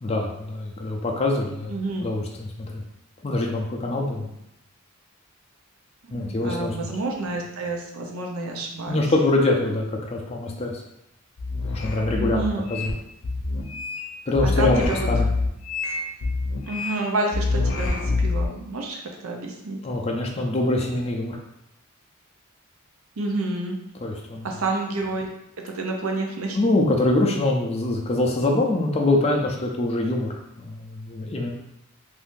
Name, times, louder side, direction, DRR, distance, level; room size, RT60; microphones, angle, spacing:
voice 1, 0.0-1.7 2.0-2.8 3.2-4.3 6.1-6.8 8.9-10.8 11.7-12.4 12.7-12.9 14.3-14.8 15.1-15.3 19.8-21.4 24.0-24.5 26.5-31.5, left 2 dB, 30° left, 0 dB, 0.4 m, -24 dB
voice 2, 1.7-2.1 6.0-9.0 12.1-12.6 14.4-15.1 16.7-19.8 23.2-23.8 24.4-25.3 25.6-26.6, right 2 dB, 75° right, 1 dB, 0.6 m, -29 dB
sound 1, 11.4-12.9 13.2-14.0 14.4-17.0 17.3-18.5, left 3 dB, 80° left, 0.6 m, -26 dB
2.6 x 2.6 x 3.6 m, 0.84 s
head